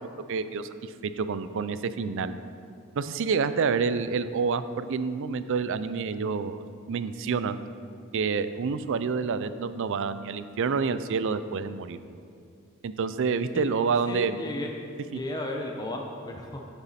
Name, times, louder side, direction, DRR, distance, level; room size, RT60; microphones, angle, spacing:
voice 1, 0.3-2.3 2.9-6.6 6.9-7.6 8.1-12.0 12.8-14.4 15.1-15.2, right 5 dB, 65° right, 13 dB, 0.4 m, -28 dB
voice 2, 14.1-14.7 15.1-16.6, left 1 dB, 20° left, 1 dB, 0.6 m, -34 dB
9.0 x 7.0 x 4.2 m, 2.4 s
head